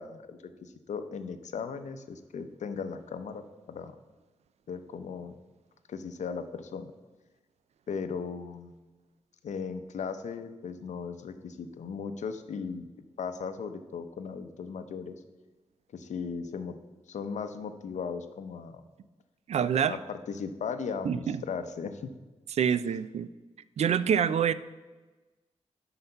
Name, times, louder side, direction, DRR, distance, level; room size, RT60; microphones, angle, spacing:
voice 1, 0.0-3.4 3.7-3.9 4.7-5.4 5.9-6.9 7.9-8.7 9.4-12.9 13.2-15.2 15.9-16.8 17.1-18.8 19.9-22.1, left 5 dB, 90° left, 9 dB, 0.7 m, -37 dB
voice 2, 19.5-20.0 21.0-21.4 22.5-23.3 23.8-24.5, right 8 dB, 65° right, 16 dB, 0.4 m, -26 dB
7.9 x 5.7 x 5.7 m, 1.2 s
wide cardioid pair, 170°, 12 cm